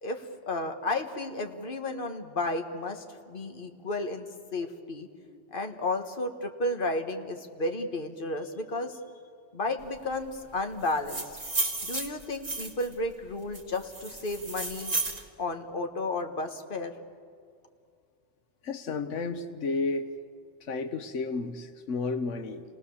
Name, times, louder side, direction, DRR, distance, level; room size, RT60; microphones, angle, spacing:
voice 1, 0.0-4.3 4.5-5.1 5.5-8.9 9.5-11.4 11.8-15.0 15.4-16.9, left 2 dB, 45° left, 5 dB, 1.7 m, -33 dB
sound 1, 10.9-12.9 13.5-15.2, right 3 dB, 35° right, 2.0 m, -33 dB
voice 2, 18.6-20.1 20.6-22.6, left 4 dB, 85° left, 9 dB, 1.3 m, -32 dB
30.0 x 18.5 x 7.1 m, 2.3 s
omnidirectional pair, 1.2 m